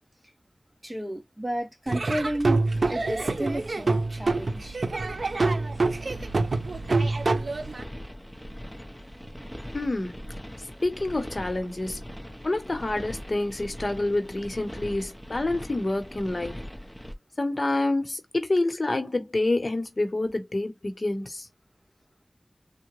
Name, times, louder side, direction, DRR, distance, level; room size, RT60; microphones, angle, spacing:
voice 1, 0.8-2.6 2.9-4.8, right 1 dB, 10° right, 1.2 m, -32 dB
Laughter / Drum, 1.9-7.8, right 3 dB, 85° right, 0.5 m, -26 dB
sound 1, 2.7-17.1, equal, 5° left, 0.8 m, -42 dB
voice 2, 9.7-10.2 10.8-12.0 12.4-16.6 17.4-21.5, left 2 dB, 55° left, 0.9 m, -27 dB
3.7 x 2.1 x 3.0 m
wide cardioid pair, 60°, 0 cm